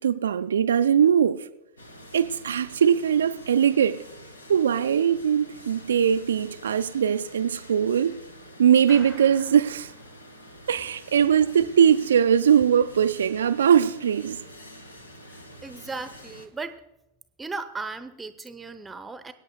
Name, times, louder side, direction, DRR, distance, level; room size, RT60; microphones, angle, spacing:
voice 1, 0.0-1.5 2.1-4.0 4.5-8.2 8.6-9.9 10.7-14.4, right 8 dB, 65° right, 0.3 m, -21 dB
sound 1, 1.8-16.5, equal, 75° left, 1.1 m, -47 dB
Clapping, 8.9-10.6, left 2 dB, 40° left, 3.9 m, -48 dB
voice 2, 15.3-16.8 17.4-19.3, right 3 dB, 10° right, 0.7 m, -36 dB
25.5 x 8.9 x 2.3 m
figure-of-eight pair, 90°, 0 cm